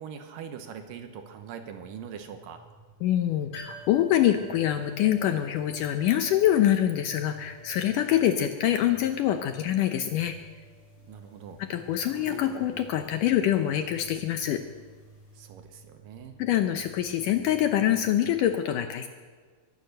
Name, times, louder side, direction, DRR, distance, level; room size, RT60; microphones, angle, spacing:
voice 1, 0.0-2.6 11.1-11.6 15.3-16.4, right 7 dB, 70° right, 7 dB, 2.5 m, -42 dB
sound 1, 0.7-18.6, right 1 dB, 5° right, 6.8 m, -54 dB
voice 2, 3.0-10.4 11.7-14.6 16.4-19.1, left 11 dB, 75° left, 7 dB, 2.0 m, -25 dB
sound 2, 3.5-15.1 15.4-15.5, equal, 40° left, 5.1 m, -52 dB
sound 3, 8.0-8.8 9.3-10.1 10.7-11.4 11.6-13.3 14.0-14.1, left 2 dB, 10° left, 1.8 m, -45 dB
23.0 x 9.5 x 6.6 m, 1.5 s
omnidirectional pair, 4.4 m